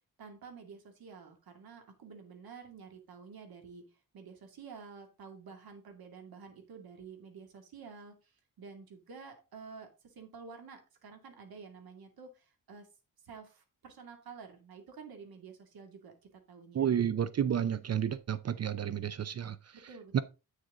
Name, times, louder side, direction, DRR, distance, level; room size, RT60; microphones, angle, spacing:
voice 1, 0.2-3.9 4.1-12.9 13.2-16.9 19.7-20.2, right 5 dB, 80° right, 2.5 m, -50 dB
voice 2, 16.7-19.6 20.1-20.2, right 9 dB, 45° right, 0.5 m, -30 dB
8.9 x 6.6 x 3.7 m
wide cardioid pair, 150°, 36 cm